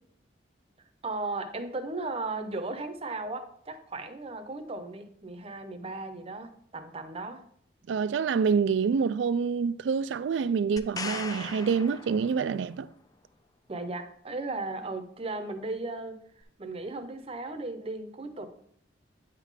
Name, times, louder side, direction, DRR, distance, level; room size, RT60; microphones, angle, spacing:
voice 1, 1.0-7.4 13.7-16.2 16.6-18.5, right 2 dB, 30° right, 0.7 m, -36 dB
voice 2, 7.9-12.9, right 6 dB, 75° right, 0.3 m, -27 dB
sound 1, 10.8-12.7 16.4-16.5, left 4 dB, 20° left, 0.3 m, -39 dB
9.0 x 3.7 x 4.9 m
head